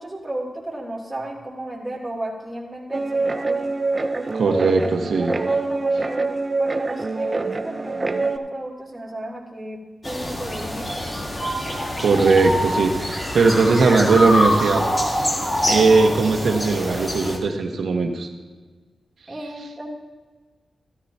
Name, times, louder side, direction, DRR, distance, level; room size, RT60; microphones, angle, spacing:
voice 1, 0.0-3.7 4.9-6.3 6.6-9.8 10.0-11.2 19.3-20.0, right 1 dB, 5° right, -5 dB, 3.1 m, -34 dB
Guitar, 2.9-8.4, right 3 dB, 30° right, 0.7 m, -25 dB
voice 2, 4.3-5.3 12.0-14.8 15.7-18.3, right 4 dB, 85° right, 3 dB, 1.3 m, -18 dB
sound 1, 10.0-17.4, equal, 30° left, 1.6 m, -25 dB
14.0 x 13.0 x 2.9 m, 1.4 s
wide cardioid pair, 105°, 0 cm